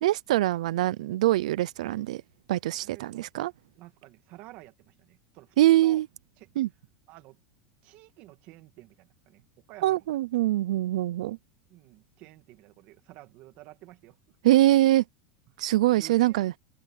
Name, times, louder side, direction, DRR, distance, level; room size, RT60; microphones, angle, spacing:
voice 1, 0.0-2.2 2.5-3.5 5.6-6.1 6.6-6.7 9.8-11.4 14.4-15.0 15.6-16.5, right 15 dB, 80° right, 0.6 m, -23 dB
voice 2, 2.8-3.3 3.8-6.0 6.4-6.5 7.1-7.4 7.8-10.1 11.2-11.4 11.7-14.4 15.5-15.6 16.0-16.4, right 18 dB, 40° right, 2.1 m, -51 dB
supercardioid pair, 165°, 4 cm